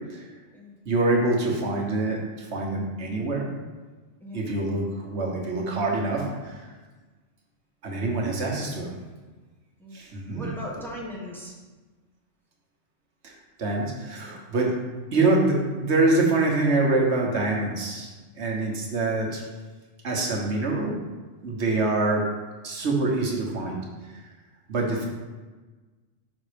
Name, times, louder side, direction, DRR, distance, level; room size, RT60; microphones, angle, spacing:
voice 1, 0.8-3.5 4.3-6.7 7.8-8.9 9.9-10.5 13.2-14.7 15.1-19.4 20.0-21.0 21.4-22.2 22.6-23.8 24.1-24.2 24.7-25.0, right 2 dB, 65° right, -1 dB, 1.4 m, -25 dB
voice 2, 4.2-4.6 9.8-9.9 10.3-11.6 24.9-25.0, equal, ahead, -4 dB, 1.2 m, -38 dB
5.8 x 4.2 x 5.0 m, 1.3 s
omnidirectional pair, 1.2 m